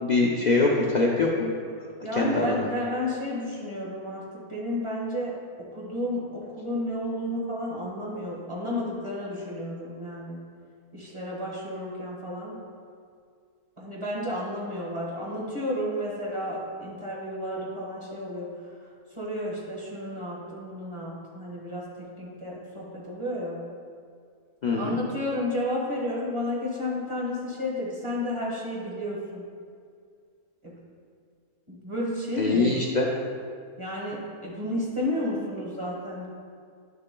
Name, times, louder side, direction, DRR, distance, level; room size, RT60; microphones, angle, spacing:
voice 1, 0.0-1.5 2.1-2.6 24.6-25.0 32.4-33.1, left 3 dB, 75° left, -3 dB, 0.4 m, -23 dB
voice 2, 2.0-10.4 10.9-12.6 13.8-18.8 19.1-23.6 24.8-29.4 30.6-30.7 31.7-32.8 33.8-36.3, left 1 dB, 20° right, -5 dB, 1.4 m, -32 dB
9.6 x 6.8 x 2.2 m, 2.2 s
omnidirectional pair, 1.6 m